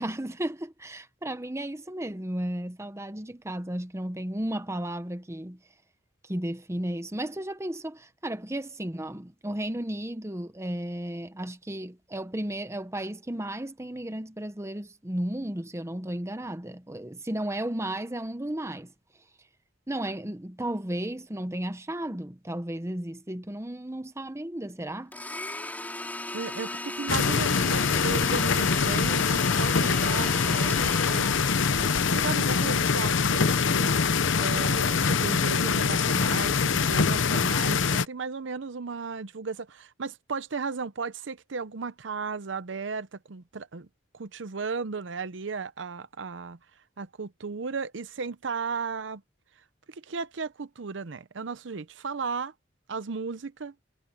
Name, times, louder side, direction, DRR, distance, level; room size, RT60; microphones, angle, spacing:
voice 1, 0.0-5.6 6.2-18.9 19.9-25.1, right 1 dB, 15° right, 1.0 m, -34 dB
Domestic sounds home sounds, 25.1-32.2, left 1 dB, 10° left, 4.6 m, -36 dB
voice 2, 26.3-43.9 44.1-46.6 47.0-49.2 49.9-52.5 52.9-53.7, right 4 dB, 70° right, 0.7 m, -35 dB
sound 1, 27.1-38.1, left 5 dB, 80° left, 0.8 m, -24 dB
head